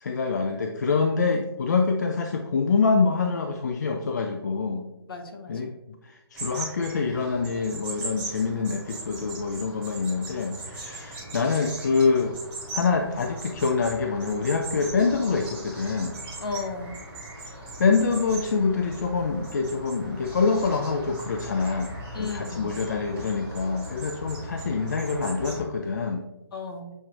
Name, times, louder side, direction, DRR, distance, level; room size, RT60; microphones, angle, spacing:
voice 1, 0.0-4.9 5.5-5.7 6.0-12.4 12.7-16.2 17.8-26.3, left 4 dB, 45° left, 3 dB, 0.3 m, -25 dB
voice 2, 5.1-5.6 16.4-17.0 22.1-22.7 26.5-26.9, left 4 dB, 60° left, 4 dB, 1.0 m, -34 dB
sound 1, 6.3-25.6, right 2 dB, 10° right, 1.0 m, -39 dB
7.1 x 2.5 x 2.9 m, 0.96 s
hypercardioid pair, 165°, 13 cm